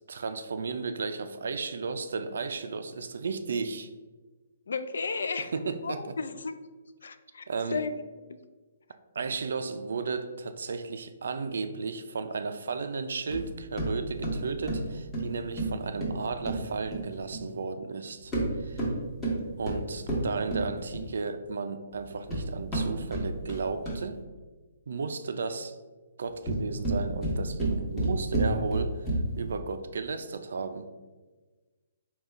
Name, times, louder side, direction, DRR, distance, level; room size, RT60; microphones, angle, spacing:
voice 1, 0.0-3.9 5.5-6.2 7.5-7.9 9.2-18.3 18.6-18.9 19.6-24.2 24.9-25.8 26.2-28.9 29.4-30.9, right 4 dB, 75° right, 9 dB, 0.3 m, -34 dB
voice 2, 4.7-5.5 5.8-6.6 7.0-7.4 7.7-7.9 8.3-8.4, left 4 dB, 80° left, 11 dB, 0.3 m, -33 dB
sound 1, 13.3-17.5 18.2-21.2 22.0-24.2 26.2-29.5, right 1 dB, 15° left, 1.0 m, -31 dB
3.7 x 2.3 x 4.4 m, 1.3 s
hypercardioid pair, 155°, 0 cm